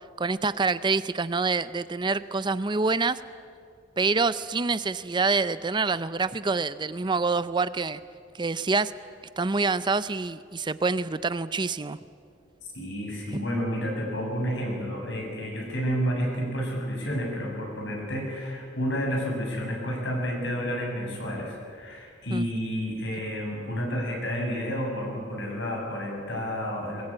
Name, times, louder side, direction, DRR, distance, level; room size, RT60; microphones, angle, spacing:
voice 1, 0.2-3.2 4.0-8.0 8.3-8.9 9.4-12.0 22.3-22.4, right 4 dB, 25° right, 14 dB, 0.5 m, -26 dB
voice 2, 12.7-27.0, equal, 75° left, 0 dB, 7.8 m, -30 dB
22.0 x 21.5 x 8.8 m, 2.2 s
head